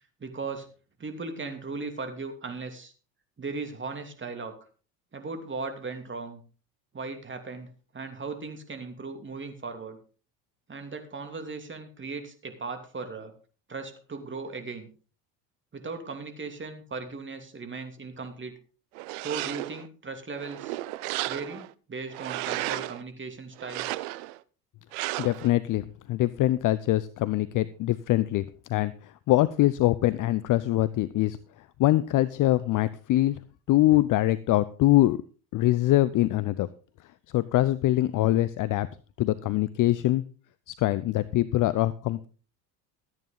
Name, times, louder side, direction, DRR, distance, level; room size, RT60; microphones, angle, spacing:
voice 1, 0.2-0.7 1.0-2.9 3.4-4.6 5.1-6.4 6.9-7.7 7.9-10.0 10.7-13.3 13.7-14.9 15.7-18.6 19.2-20.8 21.3-24.0, right 4 dB, 25° right, 6 dB, 2.8 m, -37 dB
sound 1, 18.9-19.9 20.4-21.7 22.1-23.0 23.6-24.4 24.9-25.5, right 19 dB, 65° right, 0.7 m, -34 dB
voice 2, 25.2-28.4 28.7-28.9 29.3-31.4 31.8-33.4 33.7-35.2 35.5-36.7 37.3-38.9 39.2-40.2 40.7-42.3, left 15 dB, 40° left, 17 dB, 0.6 m, -23 dB
14.0 x 9.3 x 3.9 m, 0.37 s
hypercardioid pair, 75°, 50 cm